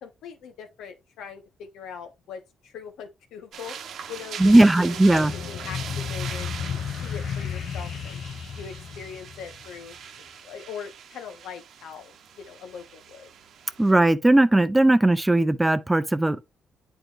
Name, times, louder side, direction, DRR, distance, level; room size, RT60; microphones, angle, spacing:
voice 1, 0.0-3.8 4.1-8.2 8.6-9.9 10.4-13.3, left 7 dB, 85° left, 1.3 m, -41 dB
sound 1, 3.5-13.9, right 7 dB, 70° right, 0.9 m, -41 dB
voice 2, 4.4-5.3 13.8-16.4, right 1 dB, 10° right, 0.5 m, -18 dB
sound 2, 4.9-9.9, left 7 dB, 65° left, 0.6 m, -33 dB
8.8 x 4.6 x 2.5 m
cardioid pair, 90°, 0 cm